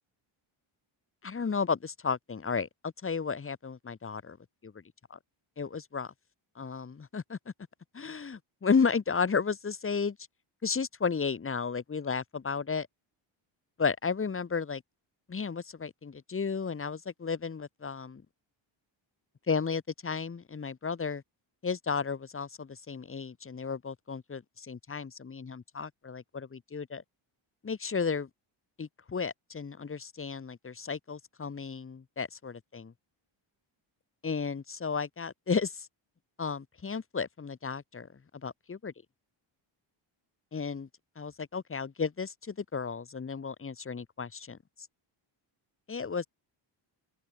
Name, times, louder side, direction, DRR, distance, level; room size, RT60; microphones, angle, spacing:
voice 1, 1.2-4.4 4.6-4.7 5.6-6.1 6.6-7.4 8.0-8.4 8.6-10.1 10.6-12.9 13.8-14.8 15.3-18.2 19.5-21.2 21.6-27.0 27.6-28.3 28.8-32.9 34.2-35.7 36.4-38.1 38.4-38.9 40.5-40.9 41.2-44.6 45.9-46.3, left 5 dB, 25° left, 3.3 m, -33 dB
open air
cardioid pair, 165°, 48 cm